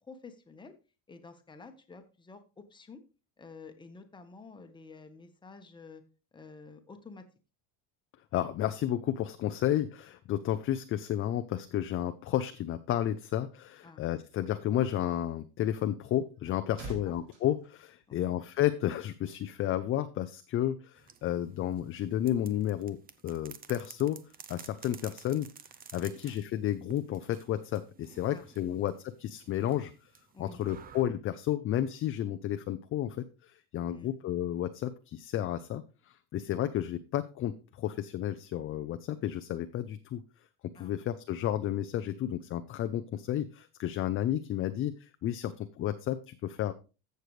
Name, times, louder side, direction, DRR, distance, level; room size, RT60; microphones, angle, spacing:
voice 1, 0.0-0.7 1.1-3.0 3.4-6.0 6.3-7.2 13.8-14.0 16.8-17.2 18.1-18.4 26.2-26.4 28.3-28.5 30.3-30.6 33.9-34.2 40.7-40.9, left 4 dB, 10° left, 6 dB, 1.1 m, -50 dB
voice 2, 8.3-23.0 23.2-24.2 24.5-25.5 25.9-29.9 30.4-40.2 40.7-46.7, left 12 dB, 35° left, 9 dB, 0.5 m, -32 dB
sound 1, 16.3-18.7 19.0-19.2, right 2 dB, 55° right, 5.2 m, -47 dB
sound 2, 20.9-31.0, right 7 dB, 25° right, 0.6 m, -53 dB
14.5 x 6.7 x 3.2 m, 0.33 s
cardioid pair, 145°, 39 cm